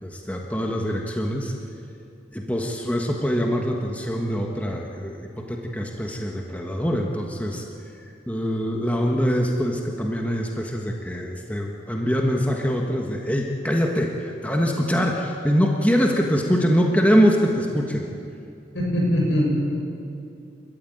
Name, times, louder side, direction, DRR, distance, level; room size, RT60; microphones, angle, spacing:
voice 1, 0.0-1.5 2.3-7.6 8.3-18.1, equal, 10° left, 0 dB, 1.5 m, -23 dB
voice 2, 18.7-19.5, equal, 80° left, -2 dB, 7.7 m, -21 dB
29.0 x 13.5 x 9.4 m, 2.6 s
head